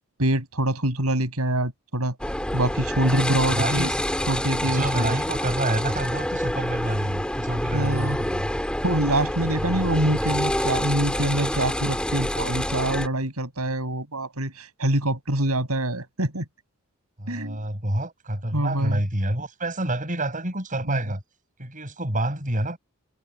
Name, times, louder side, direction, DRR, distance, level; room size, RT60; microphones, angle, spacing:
voice 1, 0.2-2.2 2.5-3.9 4.3-5.1 7.7-8.2 8.8-16.4 17.3-17.6 18.5-19.0 20.9-21.0, right 1 dB, 80° right, 5.9 m, -25 dB
sound 1, 2.2-13.1, left 1 dB, 5° left, 2.5 m, -27 dB
voice 2, 3.5-4.0 4.6-8.5 9.5-9.8 17.2-21.2 21.6-22.8, right 1 dB, 35° right, 7.9 m, -28 dB
head